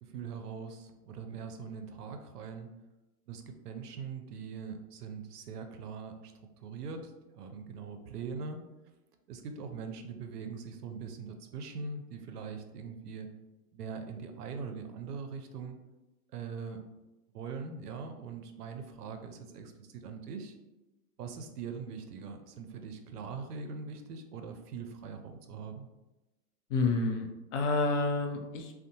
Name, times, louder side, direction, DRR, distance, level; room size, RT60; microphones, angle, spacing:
voice 1, 0.0-2.7 3.3-6.3 6.6-8.6 9.3-13.3 13.7-15.8 16.3-16.8 17.3-20.5 21.2-25.9, right 5 dB, 85° right, 6 dB, 0.5 m, -42 dB
voice 2, 26.7-28.7, left 3 dB, 50° left, 4 dB, 0.5 m, -29 dB
2.6 x 2.1 x 2.7 m, 1.0 s
hypercardioid pair, 120°, 46 cm